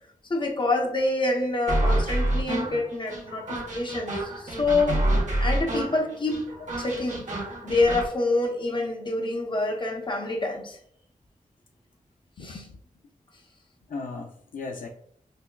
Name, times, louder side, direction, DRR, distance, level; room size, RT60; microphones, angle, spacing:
voice 1, 0.3-5.0 5.4-6.4 6.8-7.2 7.6-10.8 12.4-12.6, left 2 dB, 35° left, 0.8 m, -26 dB
sound 1, 1.7-8.1, right 1 dB, 60° right, 1.1 m, -28 dB
voice 2, 12.4-12.8 13.9-14.9, left 4 dB, 70° left, 0.4 m, -37 dB
5.8 x 2.2 x 2.3 m
wide cardioid pair, 115°, 14 cm